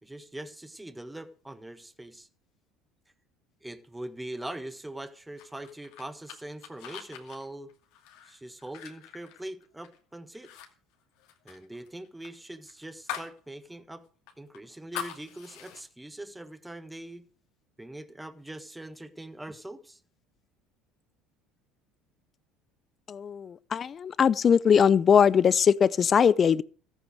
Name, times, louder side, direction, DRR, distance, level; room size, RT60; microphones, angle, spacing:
voice 1, 0.0-2.3 3.6-7.7 8.2-10.5 11.4-14.1 14.4-17.3 17.8-20.0, right 1 dB, 10° right, 1.4 m, -42 dB
sound 1, 5.4-10.0 10.3-10.7 10.9-13.4 13.7-13.8 14.3-15.8, left 10 dB, 70° left, 2.4 m, -42 dB
voice 2, 23.1-26.6, left 7 dB, 40° left, 0.6 m, -21 dB
14.5 x 8.5 x 6.6 m
hypercardioid pair, 75°, 0 cm